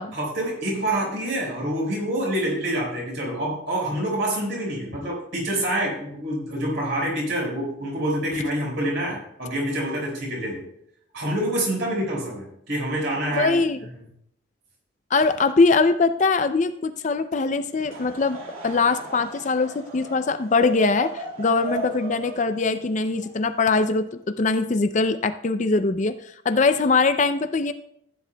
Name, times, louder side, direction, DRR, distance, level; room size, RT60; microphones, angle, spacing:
voice 1, 0.1-10.6 11.1-13.5, right 1 dB, 55° right, -2 dB, 4.8 m, -27 dB
voice 2, 13.3-13.8 15.1-18.4 18.6-27.7, left 3 dB, 35° left, 10 dB, 0.4 m, -22 dB
Laughter / Crowd, 17.7-24.1, right 2 dB, 80° right, 2.4 m, -37 dB
15.0 x 10.0 x 2.3 m, 0.74 s
head